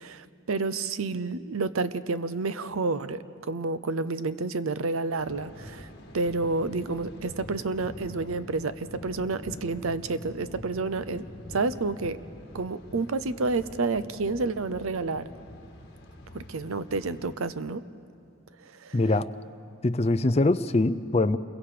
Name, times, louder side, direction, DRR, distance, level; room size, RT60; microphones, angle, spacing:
voice 1, 0.0-5.9 6.1-12.2 12.5-15.3 16.3-17.8 18.6-19.0, right 3 dB, 85° right, 14 dB, 0.7 m, -30 dB
Thunder, 5.2-17.3, equal, 50° left, 1.8 m, -45 dB
voice 2, 18.9-19.3 19.8-21.4, left 2 dB, 30° left, 12 dB, 0.5 m, -23 dB
28.0 x 22.5 x 5.1 m, 2.4 s
head